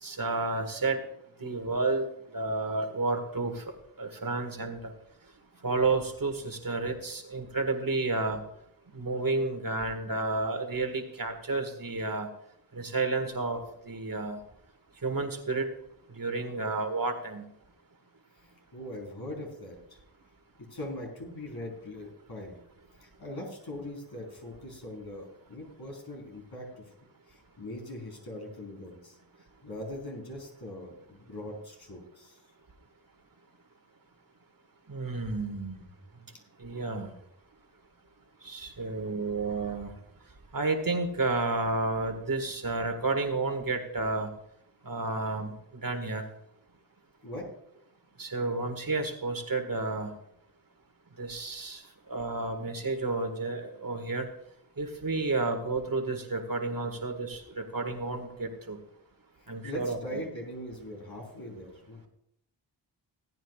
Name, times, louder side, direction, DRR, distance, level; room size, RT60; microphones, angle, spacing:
voice 1, 0.0-1.0 1.4-2.1 2.3-3.7 4.0-4.9 5.6-8.4 8.9-12.3 12.7-14.4 15.0-15.7 16.1-17.5 34.9-35.9 36.6-37.1 38.4-39.9 40.5-44.3 44.8-46.2 48.2-50.1 51.2-54.3 54.8-58.8 59.5-60.2, right 3 dB, 50° right, 6 dB, 2.0 m, -31 dB
voice 2, 18.4-20.0 20.6-22.5 23.0-26.9 27.3-32.4 47.2-47.5 59.4-62.0, left 1 dB, 60° left, -1 dB, 4.2 m, -41 dB
18.0 x 9.2 x 2.5 m, 0.76 s
cardioid pair, 45°, 44 cm